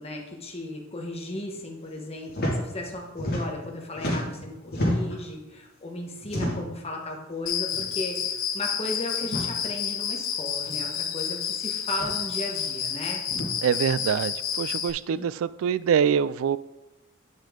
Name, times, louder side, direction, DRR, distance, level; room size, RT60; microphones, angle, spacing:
voice 1, 0.0-13.2 15.1-15.3, left 1 dB, 30° left, 1 dB, 1.3 m, -35 dB
sound 1, 2.3-2.6 2.8-3.7 3.9-5.2 6.2-6.8 7.7-7.9 8.2-8.3 9.2-9.5 10.6-10.7 11.9-12.2 13.3-13.5, left 1 dB, 50° left, 2.4 m, -30 dB
Cricket, 7.5-14.9, left 8 dB, 85° left, 0.8 m, -30 dB
voice 2, 13.6-16.6, right 7 dB, 80° right, 17 dB, 0.3 m, -24 dB
8.5 x 6.3 x 3.8 m, 1.0 s
head